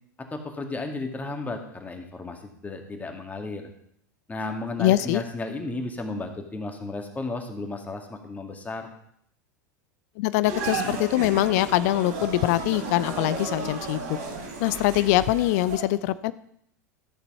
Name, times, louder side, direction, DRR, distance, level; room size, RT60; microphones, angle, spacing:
voice 1, 0.3-3.7 4.3-8.9, left 2 dB, 15° left, 4 dB, 2.1 m, -34 dB
voice 2, 4.8-5.2 10.2-14.2 14.6-16.3, left 16 dB, 55° left, 16 dB, 0.5 m, -23 dB
sound 1, 10.4-15.8, right 3 dB, 60° right, 3.9 m, -33 dB
13.5 x 6.8 x 5.6 m, 0.70 s
hypercardioid pair, 85°, 10 cm